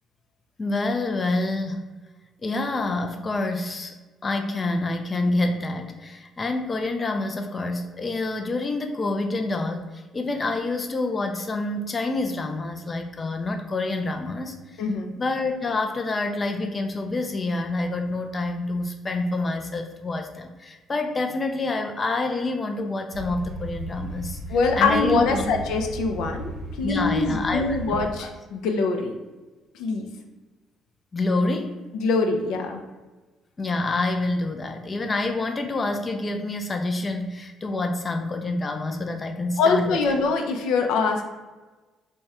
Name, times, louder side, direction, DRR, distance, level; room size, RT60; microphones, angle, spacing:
voice 1, 0.6-1.9 2.4-3.9 4.2-14.6 15.2-24.4 24.8-25.4 26.8-28.1 31.1-31.8 33.6-40.2, left 2 dB, 30° left, 5 dB, 0.4 m, -27 dB
voice 2, 14.8-15.1 24.5-26.5 26.8-29.1 29.7-30.0 31.9-32.8 39.6-41.2, left 4 dB, 80° left, 4 dB, 0.5 m, -23 dB
sound 1, 23.1-28.1, right 2 dB, 60° right, 0.7 m, -36 dB
3.6 x 2.2 x 4.1 m, 1.2 s
cardioid pair, 95°, 0 cm